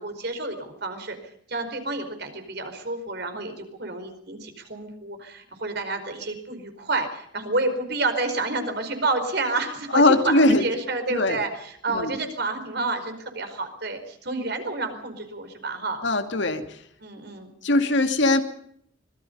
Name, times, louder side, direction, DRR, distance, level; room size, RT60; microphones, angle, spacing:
voice 1, 0.0-16.0 17.0-17.5, right 3 dB, 55° right, 7 dB, 4.9 m, -29 dB
voice 2, 9.9-10.7 11.1-11.4 11.9-12.1 16.0-16.7 17.6-18.4, left 2 dB, 65° left, 7 dB, 2.4 m, -20 dB
25.5 x 21.5 x 5.5 m, 0.69 s
head